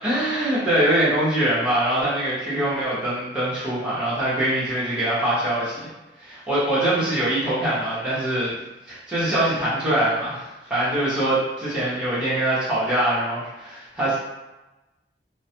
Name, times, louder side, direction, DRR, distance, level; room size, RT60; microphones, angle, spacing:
voice 1, 0.0-5.9 6.2-8.5 8.9-10.4 10.7-14.2, right 1 dB, 5° right, -12 dB, 0.8 m, -23 dB
2.3 x 2.1 x 2.7 m, 1.1 s
head